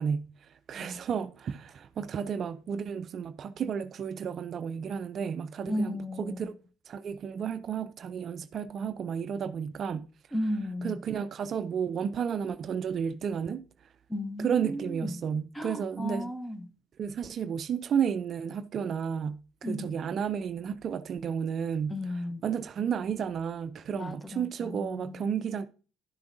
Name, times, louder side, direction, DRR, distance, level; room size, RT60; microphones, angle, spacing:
voice 1, 0.0-6.5 6.9-10.1 10.8-13.9 14.4-16.3 17.0-22.0 22.4-25.7, right 7 dB, 50° right, 0.4 m, -32 dB
voice 2, 5.7-6.4 10.3-11.0 14.1-15.1 15.5-16.7 19.6-19.9 21.9-22.4 23.9-25.2, left 1 dB, 10° left, 0.9 m, -34 dB
12.0 x 6.8 x 2.6 m
hypercardioid pair, 65°, 0 cm